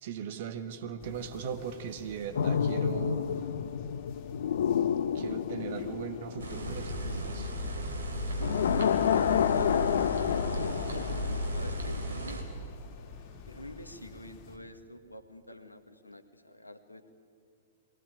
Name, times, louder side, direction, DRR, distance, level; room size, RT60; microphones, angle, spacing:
voice 1, 0.0-3.4 5.1-7.5, right 7 dB, 50° right, 9 dB, 1.5 m, -39 dB
sound 1, 1.0-14.6, left 3 dB, 35° left, 4.1 m, -51 dB
sound 2, 2.3-7.4 8.3-12.3 12.5-12.8, left 8 dB, 60° left, 0.7 m, -30 dB
sound 3, 6.4-12.4, equal, 65° right, 3.9 m, -34 dB
voice 2, 8.6-9.7 10.4-10.8 11.5-12.4 13.5-17.1, left 1 dB, 85° left, 9 dB, 1.7 m, -47 dB
23.0 x 18.5 x 9.5 m, 2.3 s
figure-of-eight pair, 105°, 0 cm